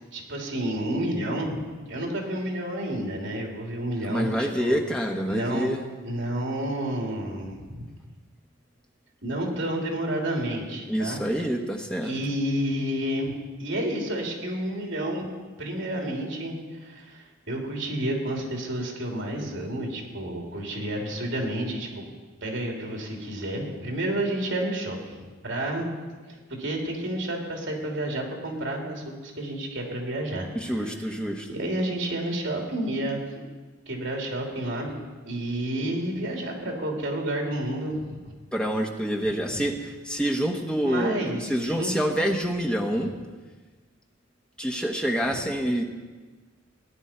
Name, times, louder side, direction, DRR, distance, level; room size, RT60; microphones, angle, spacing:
voice 1, 0.1-4.8 5.3-5.7 6.0-7.9 9.2-11.2 12.0-13.3 13.6-15.3 15.6-22.0 22.4-25.9 26.2-30.9 31.5-33.4 33.9-35.0 35.3-38.3 39.5-39.6 40.8-42.1 45.2-45.4, right 1 dB, 65° right, 0 dB, 3.1 m, -30 dB
voice 2, 4.1-5.8 10.9-12.1 30.5-31.5 38.5-43.1 44.6-45.8, equal, 5° left, 2 dB, 1.1 m, -27 dB
18.0 x 10.0 x 4.5 m, 1.4 s
head